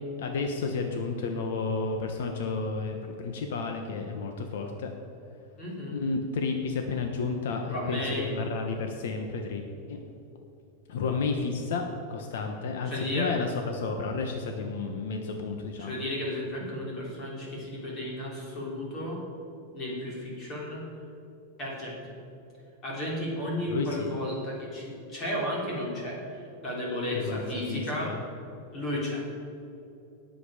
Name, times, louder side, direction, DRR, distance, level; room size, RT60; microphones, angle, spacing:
voice 1, 0.2-4.9 5.9-10.0 10.9-16.0 23.7-24.1 27.1-27.4 27.7-28.2, left 4 dB, 65° left, 4 dB, 1.2 m, -31 dB
voice 2, 5.6-6.0 7.7-8.3 12.8-13.3 14.4-14.5 15.8-19.2 19.7-20.8 21.6-22.0 22.8-28.1 28.7-29.4, left 1 dB, 20° left, -4 dB, 3.5 m, -33 dB
19.5 x 7.8 x 5.0 m, 2.9 s
supercardioid pair, 180°, 0 cm